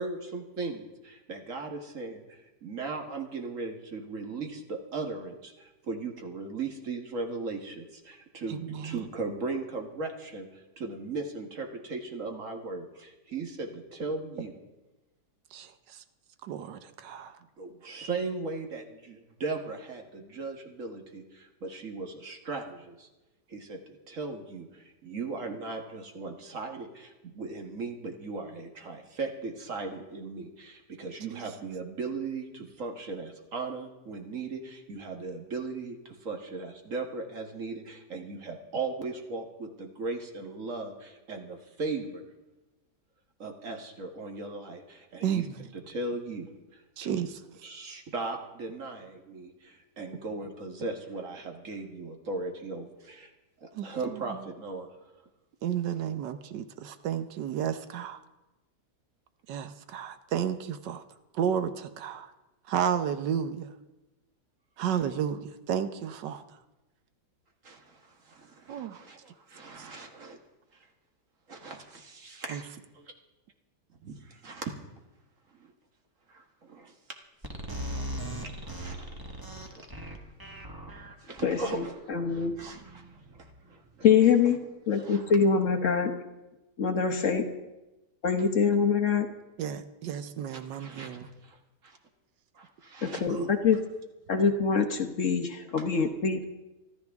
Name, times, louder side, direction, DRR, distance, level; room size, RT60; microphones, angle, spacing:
voice 1, 0.0-14.5 17.6-23.1 23.5-42.3 43.4-45.4 45.9-47.2 47.6-53.3 53.6-54.9 67.6-70.4 70.7-70.9 71.5-72.7 74.0-74.7 75.5-75.7 76.3-76.9 78.4-79.9 81.2-84.1 84.9-85.3 90.5-92.0 92.5-93.5, right 3 dB, 50° right, 4 dB, 1.8 m, -38 dB
voice 2, 8.5-9.0 15.5-16.0 16.4-17.4 31.3-31.5 45.2-45.7 47.0-47.4 53.7-54.5 55.6-58.2 59.5-61.0 61.3-62.3 62.6-63.7 64.8-66.6 68.7-69.0 69.8-69.9 72.5-72.6 89.6-91.3, right 8 dB, 90° right, 11 dB, 1.5 m, -32 dB
sound 1, 77.4-83.9, right 1 dB, 15° right, 1.3 m, -40 dB
voice 3, 81.4-81.8 82.1-82.5 84.0-84.6 84.9-86.1 86.8-87.4 88.2-89.3 93.0-93.8 94.3-96.4, left 6 dB, 50° left, 5 dB, 1.2 m, -24 dB
25.0 x 12.5 x 3.5 m, 1.1 s
omnidirectional pair, 1.8 m